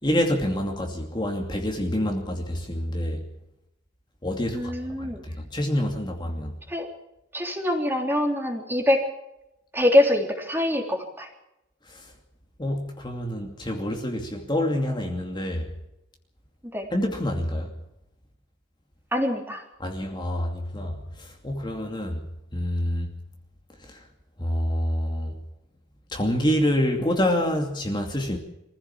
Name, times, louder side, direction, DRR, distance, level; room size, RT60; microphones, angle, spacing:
voice 1, 0.0-3.2 4.2-4.7 5.0-5.1 5.3-6.6 11.9-12.1 12.6-15.7 16.9-17.7 19.8-22.2 22.5-23.1 23.9-24.0 24.4-25.3 26.1-28.4, left 1 dB, 25° left, 2.6 m, -27 dB
voice 2, 4.5-5.2 6.7-6.9 7.3-9.0 9.7-11.3 16.7-16.9 19.1-19.6, left 1 dB, 10° right, 3.4 m, -24 dB
24.5 x 16.0 x 7.3 m
head